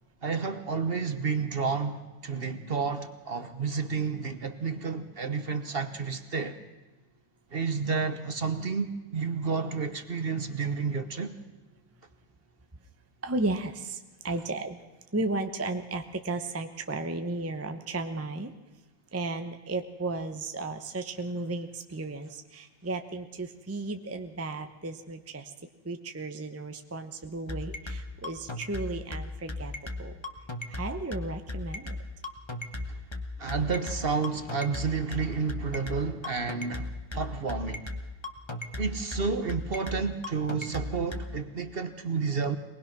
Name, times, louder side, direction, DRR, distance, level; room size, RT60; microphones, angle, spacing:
voice 1, 0.2-6.6 7.5-11.4 33.4-37.9 38.8-42.6, right 5 dB, 40° right, 9 dB, 1.0 m, -31 dB
voice 2, 13.2-14.0 14.2-14.8 15.1-18.5 19.1-25.5 25.8-29.7 30.0-30.1 30.7-32.0, right 2 dB, 20° right, 7 dB, 0.3 m, -34 dB
sound 1, 27.2-41.2, left 2 dB, 20° left, 1.0 m, -35 dB
23.0 x 19.5 x 6.0 m, 1.2 s
omnidirectional pair, 2.1 m